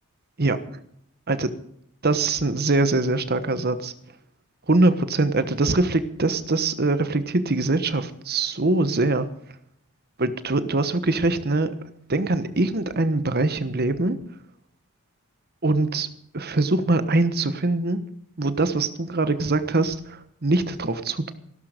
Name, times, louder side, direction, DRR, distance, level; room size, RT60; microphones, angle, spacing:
voice 1, 0.4-0.8 1.3-1.5 2.0-3.9 4.7-9.3 10.2-11.7 12.1-14.2 15.6-16.1 16.3-18.0 18.4-21.3, right 2 dB, 45° right, 12 dB, 1.2 m, -23 dB
16.5 x 12.5 x 5.2 m, 0.70 s
head